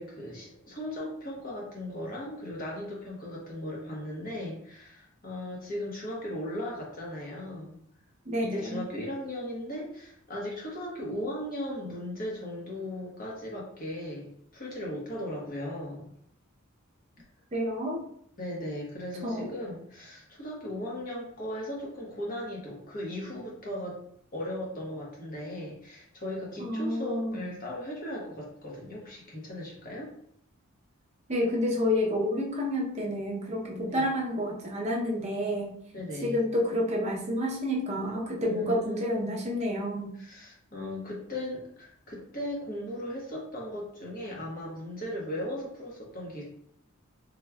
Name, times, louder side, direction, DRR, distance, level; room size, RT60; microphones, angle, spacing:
voice 1, 0.0-7.8 8.4-16.1 18.4-24.0 24.3-30.1 33.9-34.1 35.9-36.4 38.4-39.0 40.2-46.4, left 1 dB, 45° left, -3 dB, 1.0 m, -37 dB
voice 2, 8.3-8.8 17.5-18.0 19.2-19.5 26.6-27.4 31.3-35.7 36.2-40.1, left 1 dB, 30° right, -1 dB, 0.5 m, -29 dB
3.5 x 3.1 x 2.2 m, 0.68 s
head